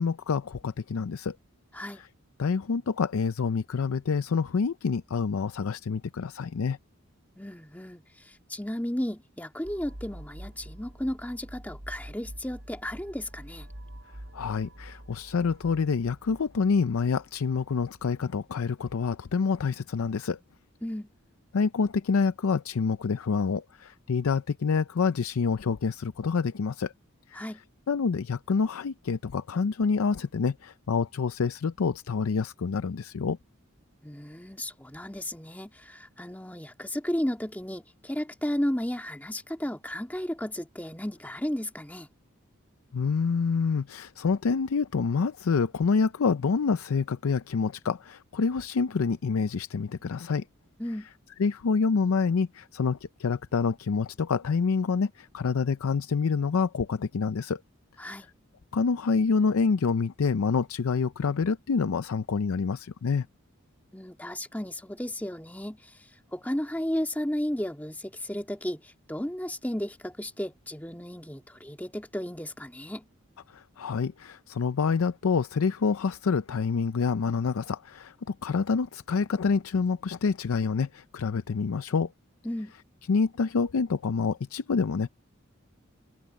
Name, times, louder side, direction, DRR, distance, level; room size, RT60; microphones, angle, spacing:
voice 1, 0.0-1.4 2.0-2.1 2.4-6.8 14.3-20.4 21.5-26.9 27.3-27.4 27.9-33.4 42.9-50.4 51.4-57.6 58.1-58.2 58.7-63.3 73.5-82.1 83.1-85.1, left 5 dB, 85° left, 0.5 m, -27 dB
voice 2, 7.4-13.7 20.8-21.1 27.3-27.6 34.0-42.1 50.8-51.1 58.0-58.3 63.9-73.1 82.4-82.7, equal, 10° left, 1.8 m, -34 dB
sound 1, 9.6-18.3, right 1 dB, 65° right, 3.6 m, -46 dB
head